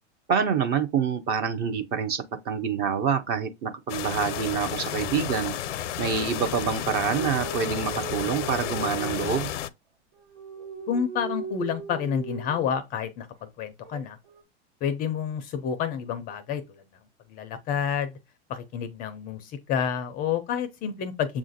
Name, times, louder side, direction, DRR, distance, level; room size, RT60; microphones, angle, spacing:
voice 1, 0.3-5.5 6.0-9.5, right 6 dB, 30° right, 0.5 m, -26 dB
sound 1, 3.9-9.7, left 10 dB, 85° left, 0.5 m, -32 dB
sound 2, 4.1-5.8 6.6-9.3 10.1-12.7 13.8-14.4, right 6 dB, 75° right, 1.6 m, -39 dB
voice 2, 10.9-13.3 13.6-14.2 14.8-16.6 17.3-18.1 18.5-21.4, left 7 dB, 25° left, 0.4 m, -29 dB
7.1 x 2.4 x 2.5 m
hypercardioid pair, 125°, 35 cm